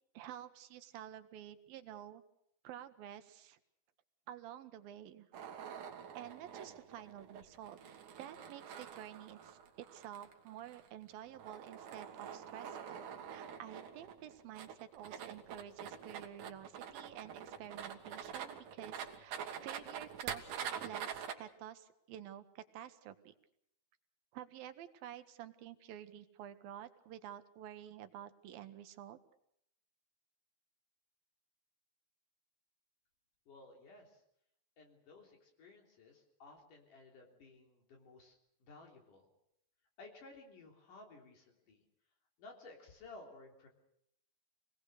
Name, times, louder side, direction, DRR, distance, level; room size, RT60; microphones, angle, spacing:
voice 1, 0.1-2.2 2.6-3.6 4.3-5.3 6.1-23.3 24.3-29.2, right 11 dB, 80° right, 10 dB, 2.8 m, -50 dB
sound 1, 5.3-21.3, right 8 dB, 65° right, 3.0 m, -46 dB
voice 2, 33.5-34.2 34.8-39.3 40.0-41.9 42.4-43.7, left 3 dB, 60° left, 1 dB, 4.9 m, -56 dB
26.5 x 19.0 x 6.6 m, 0.75 s
omnidirectional pair, 4.2 m